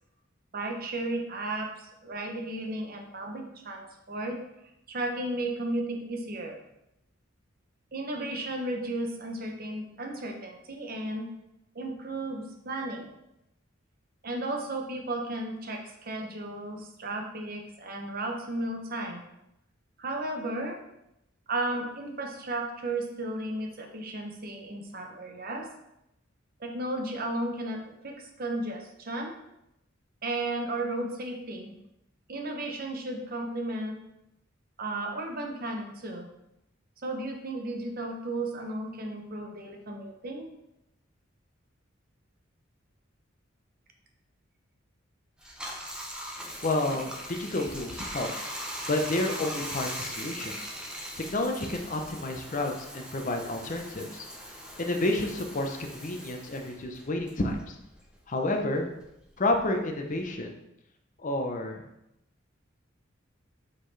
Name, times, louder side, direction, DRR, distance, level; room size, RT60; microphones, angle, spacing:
voice 1, 0.5-4.4 4.9-6.6 7.9-11.3 11.7-13.1 14.2-19.2 20.0-20.8 21.5-25.7 26.6-29.3 30.2-31.7 32.3-34.0 34.8-36.3 37.0-40.5, right 2 dB, 50° right, 3 dB, 0.9 m, -34 dB
Bathtub (filling or washing), 45.4-58.2 58.5-60.4, equal, 5° right, 0.8 m, -40 dB
voice 2, 46.6-48.3 48.9-50.6 51.2-54.3 54.8-57.8 58.3-58.9 59.4-60.5 61.2-61.8, left 2 dB, 40° left, 3 dB, 0.7 m, -30 dB
7.7 x 3.8 x 3.3 m, 0.84 s
head